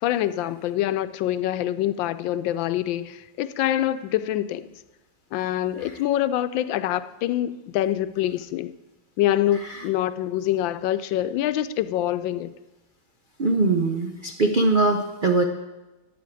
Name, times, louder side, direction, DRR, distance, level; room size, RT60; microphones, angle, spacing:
voice 1, 0.0-4.7 5.3-8.7 9.2-12.5, left 12 dB, 85° left, 13 dB, 1.3 m, -25 dB
voice 2, 13.4-15.4, right 3 dB, 90° right, 4 dB, 0.4 m, -21 dB
9.1 x 7.8 x 8.4 m, 1.0 s
omnidirectional pair, 2.0 m